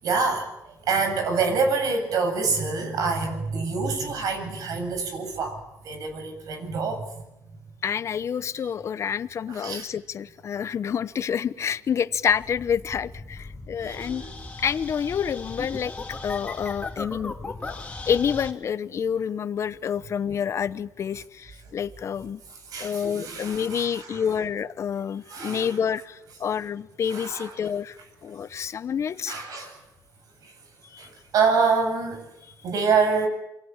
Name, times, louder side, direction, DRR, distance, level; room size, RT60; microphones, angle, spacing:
voice 1, 0.0-7.0 9.5-9.9 13.8-14.3 22.7-24.2 25.3-25.8 27.1-27.5 29.3-29.8 30.4-30.5 31.0-32.3 32.6-33.3, right 4 dB, 70° right, 7.7 m, -26 dB
voice 2, 7.8-14.2 14.6-15.9 16.2-17.3 17.6-22.4 22.8-28.0 28.2-29.3 30.9-31.1, left 7 dB, 50° left, 1.1 m, -28 dB
sound 1, 12.3-18.5, left 3 dB, 20° left, 3.2 m, -37 dB
28.5 x 23.0 x 7.4 m
cardioid pair, 110°, 7 cm